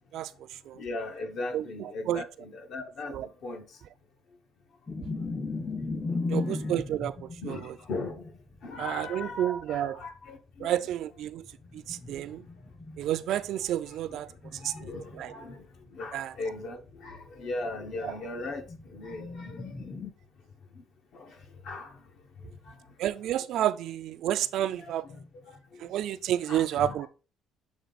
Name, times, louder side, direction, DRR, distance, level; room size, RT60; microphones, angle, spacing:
voice 1, 0.8-3.6 7.4-8.2 8.6-10.7 14.6-15.6 15.9-18.6 18.9-19.6 21.1-21.3 21.7-21.9 26.5-26.9, left 2 dB, 55° left, 1.2 m, -38 dB
voice 2, 1.5-2.2 3.1-3.3 6.3-7.7 8.8-10.0 10.6-11.5 11.7-12.4 13.0-14.3 14.6-14.9 15.1-15.3 16.1-16.3 18.0-18.2 23.0-25.1 25.8-27.1, right 11 dB, 60° right, 0.4 m, -30 dB
sound 1, 4.9-10.1 11.4-15.5 15.9-16.0 16.3-20.1, left 3 dB, 15° left, 0.5 m, -37 dB
7.1 x 3.3 x 4.0 m
cardioid pair, 155°, 0 cm